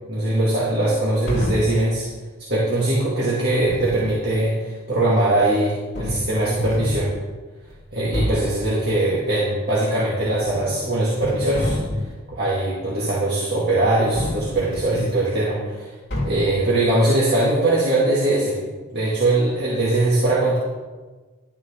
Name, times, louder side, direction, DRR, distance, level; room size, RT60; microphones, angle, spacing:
voice 1, 0.1-2.0 2.5-7.1 7.9-11.8 12.3-15.9 16.2-18.6 18.9-20.6, right 2 dB, 45° right, -7 dB, 2.2 m, -21 dB
sound 1, 1.3-1.9 3.5-4.2 5.4-5.5 5.9-7.1 7.7-7.8 8.1-8.6 10.2-10.8 11.1-12.2 14.1-15.1 16.1-16.6, left 1 dB, 50° left, 3.3 m, -29 dB
12.0 x 10.0 x 3.7 m, 1.3 s
head